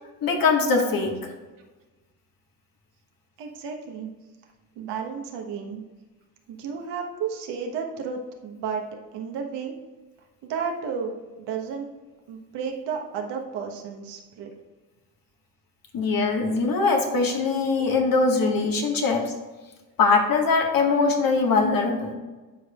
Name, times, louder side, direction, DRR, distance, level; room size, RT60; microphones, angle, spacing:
voice 1, 0.2-1.1 15.9-19.3 20.0-22.1, left 4 dB, 50° left, 1 dB, 1.7 m, -22 dB
voice 2, 3.4-4.1 4.8-5.8 6.5-8.8 9.1-9.8 10.4-11.9 12.3-14.5, right 6 dB, 70° right, 2 dB, 1.3 m, -32 dB
12.0 x 4.9 x 2.4 m, 1.2 s
hypercardioid pair, 60°, 44 cm